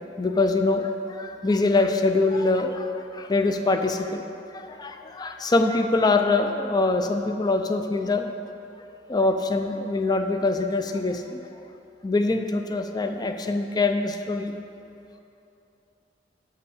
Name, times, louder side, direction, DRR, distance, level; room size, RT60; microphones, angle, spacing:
voice 1, 0.2-4.2 4.5-8.3 9.1-11.4 12.0-14.6, left 3 dB, 20° left, 6 dB, 0.4 m, -24 dB
7.1 x 5.7 x 6.3 m, 2.8 s
head